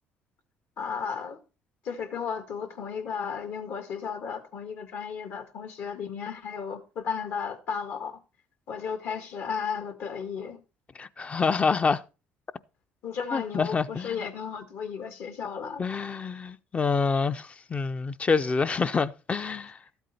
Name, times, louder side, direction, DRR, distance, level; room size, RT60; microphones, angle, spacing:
voice 1, 0.8-1.4 1.8-8.2 8.7-10.6 13.0-15.8, left 6 dB, 65° left, 1.9 m, -34 dB
voice 2, 11.0-12.0 13.3-14.2 15.8-19.8, left 4 dB, 30° left, 0.6 m, -27 dB
13.0 x 8.1 x 4.3 m
supercardioid pair, 85°, 4 cm